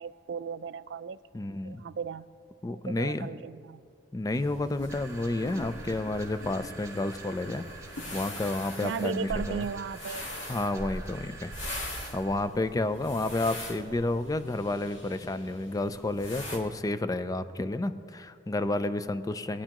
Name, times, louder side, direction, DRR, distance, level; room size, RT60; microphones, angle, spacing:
voice 1, 0.0-1.2 1.6-2.3 2.7-3.9 8.8-10.3, right 6 dB, 70° right, 14 dB, 0.3 m, -36 dB
voice 2, 1.3-1.8 2.6-3.3 4.1-7.7 8.1-9.6 10.5-11.5 12.1-19.6, left 2 dB, 20° left, 12 dB, 0.4 m, -30 dB
sound 1, 4.3-16.6, left 1 dB, 80° left, 1.7 m, -41 dB
sound 2, 4.9-12.5, right 3 dB, 15° right, 1.1 m, -47 dB
21.0 x 9.9 x 3.0 m, 2.3 s
head